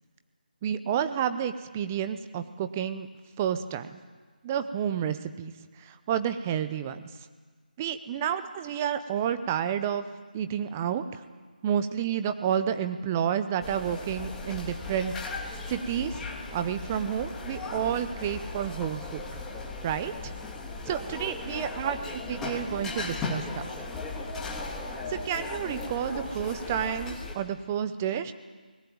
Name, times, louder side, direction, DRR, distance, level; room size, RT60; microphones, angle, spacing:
voice 1, 0.6-3.1 3.4-3.9 4.4-5.5 5.9-7.0 7.8-10.0 10.3-11.2 11.6-15.1 15.7-16.2 16.5-19.2 19.8-20.3 20.9-23.7 25.1-28.3, right 9 dB, 15° right, 11 dB, 0.7 m, -30 dB
sound 1, 13.6-27.3, left 3 dB, 5° left, 1.7 m, -37 dB
22.0 x 19.0 x 9.3 m, 1.5 s
figure-of-eight pair, 170°, 5 cm